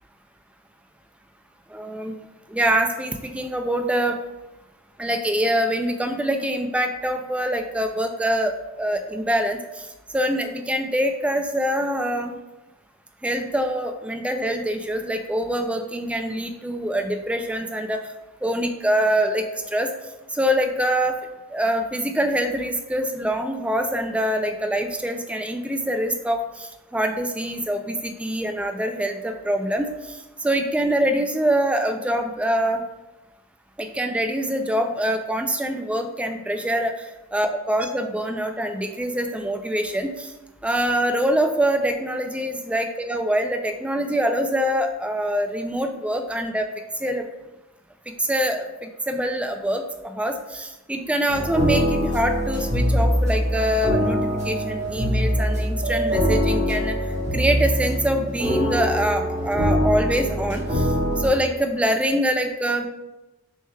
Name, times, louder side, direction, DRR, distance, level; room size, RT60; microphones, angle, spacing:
voice 1, 1.7-2.2 2.5-4.2 5.0-9.8 10.1-12.4 13.2-18.0 18.4-19.9 20.3-21.1 21.5-32.8 33.8-37.1 37.3-40.3 40.6-46.7 47.0-47.2 48.2-54.2 54.4-57.0 57.3-60.9 61.2-62.9, right 1 dB, 5° right, 5 dB, 0.3 m, -24 dB
sound 1, 51.3-61.3, equal, 35° right, 1.1 m, -23 dB
6.2 x 3.3 x 2.2 m, 1.0 s
head